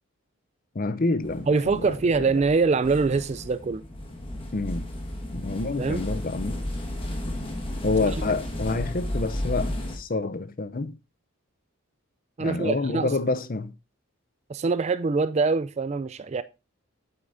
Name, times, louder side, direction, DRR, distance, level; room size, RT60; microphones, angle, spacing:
voice 1, 0.7-2.3 4.5-4.9 5.3-6.6 7.8-11.0 12.4-13.7, left 3 dB, 40° left, 0.5 m, -28 dB
sound 1, 1.2-10.0, left 1 dB, 25° left, 1.4 m, -33 dB
voice 2, 1.5-3.8 5.8-6.0 12.4-13.1 14.5-16.4, right 4 dB, 30° right, 0.3 m, -24 dB
8.9 x 8.0 x 2.6 m
head